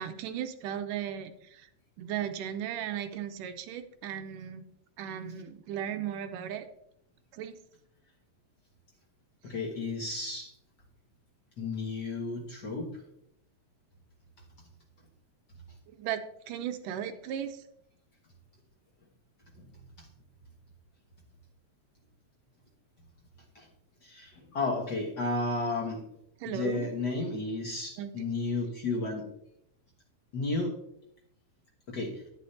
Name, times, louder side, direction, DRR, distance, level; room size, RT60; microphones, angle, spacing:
voice 1, 0.0-1.7 2.0-4.6 5.0-6.7 7.3-7.6 15.9-17.6 26.4-26.9 28.0-28.1, right 9 dB, 75° right, 8 dB, 2.2 m, -36 dB
voice 2, 9.4-10.5 11.6-13.0 19.6-20.1 23.5-23.7 24.0-26.0 26.4-29.3 30.3-30.8 31.9-32.2, left 3 dB, 65° left, -1 dB, 1.0 m, -33 dB
11.0 x 10.0 x 2.7 m, 0.74 s
omnidirectional pair, 3.9 m